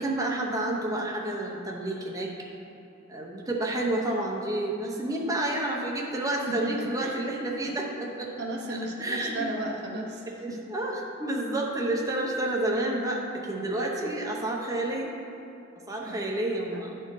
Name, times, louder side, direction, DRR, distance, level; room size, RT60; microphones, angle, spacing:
voice 1, 0.0-2.3 3.1-8.3 8.7-9.5 10.4-15.1 15.9-17.0, right 1 dB, 15° right, -2 dB, 0.8 m, -30 dB
voice 2, 6.5-7.3 8.4-10.6 16.0-16.2 16.7-16.8, right 1 dB, 55° right, 1 dB, 0.7 m, -35 dB
10.5 x 4.5 x 4.8 m, 2.9 s
head